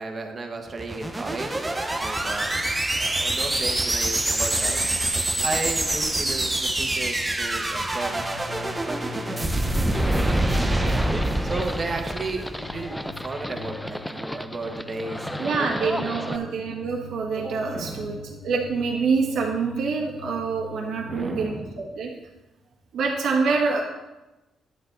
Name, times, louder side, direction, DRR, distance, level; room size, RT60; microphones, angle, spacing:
voice 1, 0.0-1.7 2.0-4.9 5.4-9.5 9.9-11.0 11.4-16.5 17.7-18.3 21.0-21.8, right 3 dB, 35° right, 3 dB, 1.5 m, -34 dB
sound 1, 0.7-13.0, right 1 dB, 15° right, 0.9 m, -26 dB
sound 2, 7.8-21.4, left 4 dB, 55° left, 1.5 m, -43 dB
Livestock farm animals working animals, 9.9-16.4, left 1 dB, 5° left, 0.4 m, -33 dB
voice 2, 15.4-22.1 22.9-23.8, right 4 dB, 75° right, -1 dB, 1.6 m, -26 dB
11.0 x 8.0 x 4.0 m, 1.0 s
cardioid pair, 90°, 0 cm